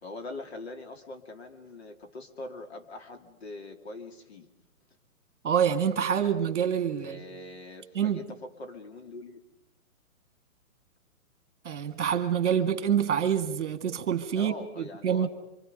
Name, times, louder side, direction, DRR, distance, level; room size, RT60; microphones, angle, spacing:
voice 1, 0.0-4.5 7.0-9.4 14.4-15.3, left 2 dB, 45° left, 2.6 m, -42 dB
voice 2, 5.4-7.2 8.0-8.2 11.6-15.3, right 8 dB, 55° right, 2.0 m, -26 dB
27.0 x 25.5 x 5.2 m
hypercardioid pair, 170°, 44 cm